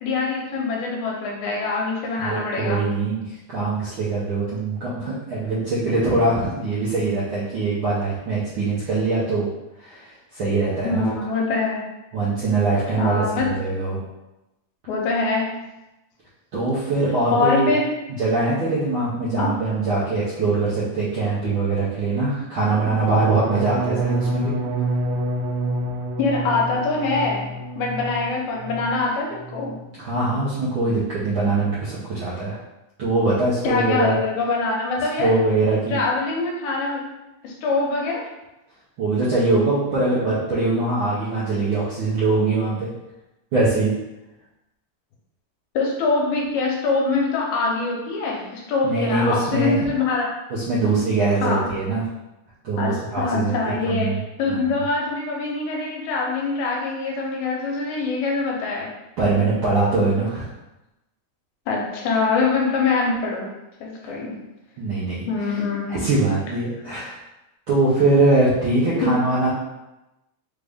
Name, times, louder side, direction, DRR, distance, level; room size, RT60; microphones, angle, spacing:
voice 1, 0.0-2.8 10.8-11.8 13.0-13.6 14.9-15.6 17.3-17.9 19.4-19.6 26.2-29.8 33.6-35.4 35.9-37.2 37.4-38.3 45.8-50.3 51.4-51.7 52.8-58.9 61.7-63.5 63.8-64.4 65.3-66.0 69.0-69.2, left 3 dB, 80° left, -1 dB, 2.1 m, -24 dB
voice 2, 2.2-9.5 9.8-11.1 12.1-14.0 16.5-17.7 18.2-24.5 30.0-32.6 33.0-34.2 35.2-36.0 39.0-42.9 43.5-43.9 48.8-49.8 50.5-52.0 52.6-53.5 53.8-54.2 54.5-54.6 59.2-60.5 64.0-64.2 64.8-65.3 65.9-67.1 67.7-69.5, right 3 dB, 70° right, -9 dB, 1.2 m, -22 dB
sound 1, 23.1-29.0 29.3-29.8 30.1-30.5, right 2 dB, 85° right, 1.3 m, -28 dB
4.8 x 2.6 x 3.4 m, 0.97 s
omnidirectional pair, 3.4 m